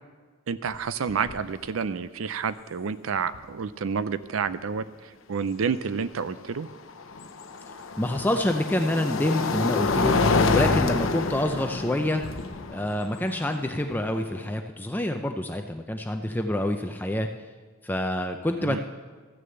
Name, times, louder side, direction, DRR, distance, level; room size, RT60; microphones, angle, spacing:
voice 1, 0.5-4.8 5.3-6.7 18.6-18.8, right 6 dB, 85° right, 14 dB, 0.5 m, -29 dB
sound 1, 0.7-0.8 1.1-1.5 3.3-3.4 6.4-14.5, left 3 dB, 75° left, 0.7 m, -27 dB
voice 2, 8.0-10.2 10.5-12.2 12.7-17.3 17.8-18.8, left 1 dB, 10° left, 5 dB, 0.5 m, -27 dB
14.0 x 6.6 x 7.8 m, 1.5 s
head